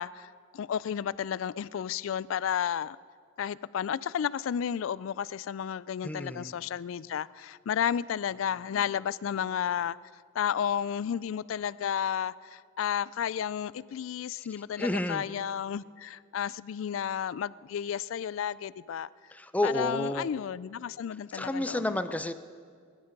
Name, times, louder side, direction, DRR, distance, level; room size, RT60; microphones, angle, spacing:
voice 1, 0.0-3.0 3.4-10.0 10.3-19.1 19.6-22.0, left 8 dB, 80° left, 20 dB, 0.3 m, -32 dB
voice 2, 6.0-6.5 14.8-15.2 19.3-20.3 21.3-22.3, left 1 dB, 10° left, 10 dB, 0.5 m, -30 dB
22.0 x 11.0 x 5.3 m, 2.1 s
head